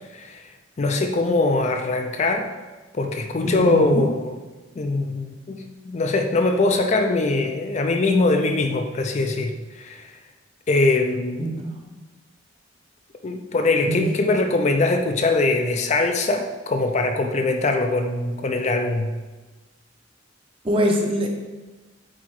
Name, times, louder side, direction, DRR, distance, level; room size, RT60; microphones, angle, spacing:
voice 1, 0.1-0.5 0.8-2.5 2.9-4.4 4.8-10.1 10.7-11.5 13.2-19.1, left 2 dB, 35° left, 5 dB, 0.4 m, -22 dB
voice 2, 3.4-4.0 11.4-11.9 13.8-14.1 20.6-21.3, equal, 30° right, 1 dB, 0.8 m, -24 dB
7.7 x 4.2 x 3.2 m, 1.2 s
head